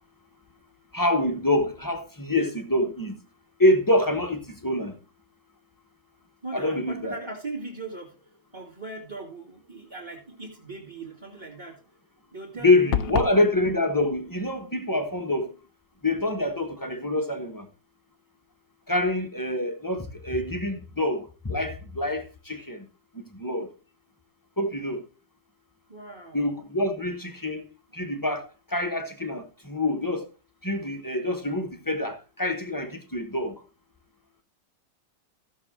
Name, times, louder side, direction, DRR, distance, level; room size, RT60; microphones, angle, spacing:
voice 1, 0.9-3.2 3.6-5.0 6.5-7.2 12.6-15.5 16.0-17.7 18.9-22.9 23.1-23.7 24.6-25.0 26.3-27.7 27.9-30.3 30.6-33.6, left 1 dB, 15° left, 0.9 m, -26 dB
voice 2, 6.4-8.1 8.5-11.8 12.3-13.3 25.9-26.5, right 3 dB, 15° right, 2.3 m, -39 dB
sound 1, 12.9-13.4, left 9 dB, 60° left, 1.0 m, -26 dB
15.5 x 6.6 x 3.7 m
omnidirectional pair, 1.9 m